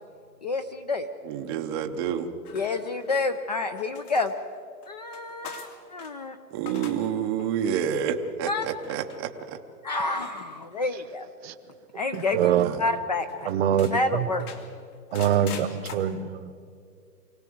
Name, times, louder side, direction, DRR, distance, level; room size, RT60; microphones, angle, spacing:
voice 1, 0.4-1.1 2.5-4.3 4.9-6.4 8.4-8.7 9.8-11.3 11.9-13.5 13.9-14.5, left 3 dB, 30° left, 10 dB, 0.4 m, -29 dB
voice 2, 1.3-2.3 6.5-9.6 12.4-12.8, right 8 dB, 15° right, 4 dB, 0.6 m, -29 dB
sound 1, 2.5-3.4 3.8-6.1 6.5-7.1 7.4-7.8 8.7-9.2 10.2-10.9 12.1-12.5 12.9-13.0 13.3-14.0 14.4-16.0, left 6 dB, 65° left, 2.9 m, -44 dB
voice 3, 12.1-12.7 13.5-14.0 15.1-16.5, right 9 dB, 40° right, 14 dB, 0.9 m, -24 dB
24.5 x 17.5 x 7.7 m, 2.3 s
hypercardioid pair, 150°, 48 cm